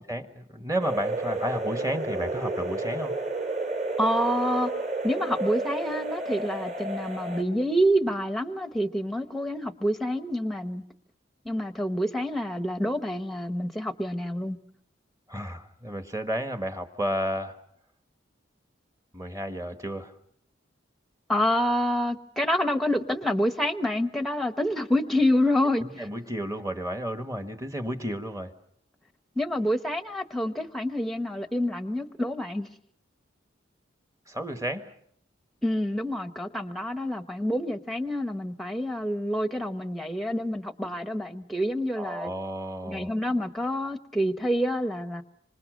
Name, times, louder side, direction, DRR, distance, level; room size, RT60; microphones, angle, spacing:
voice 1, 0.0-3.2 15.3-17.6 19.1-20.1 25.8-28.5 34.3-34.9 42.0-43.1, equal, 15° right, 8 dB, 1.4 m, -32 dB
sound 1, 0.8-7.4, right 2 dB, 40° right, 3.6 m, -31 dB
voice 2, 4.0-4.7 5.0-10.8 11.4-14.6 21.3-25.8 29.4-32.7 35.6-42.3 42.8-45.2, equal, ahead, 10 dB, 1.0 m, -27 dB
26.0 x 25.5 x 6.4 m, 0.66 s
head